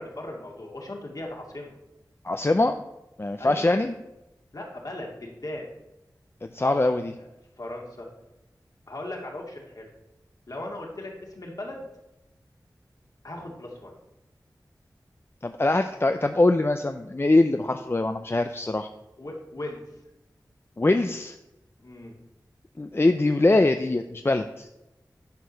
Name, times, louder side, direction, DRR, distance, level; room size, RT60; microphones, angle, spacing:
voice 1, 0.0-1.7 3.4-3.8 4.5-5.7 6.6-6.8 7.1-7.3 7.6-8.1 8.9-9.9 10.5-11.9 13.2-13.9 19.2-19.8 21.8-22.1, left 1 dB, 55° left, -1 dB, 2.2 m, -38 dB
voice 2, 2.2-2.7 3.2-3.9 6.4-7.1 15.4-18.9 20.8-21.4 22.8-24.7, left 2 dB, 35° left, 7 dB, 0.5 m, -23 dB
10.5 x 4.8 x 5.6 m, 0.93 s
wide cardioid pair, 45°, 7 cm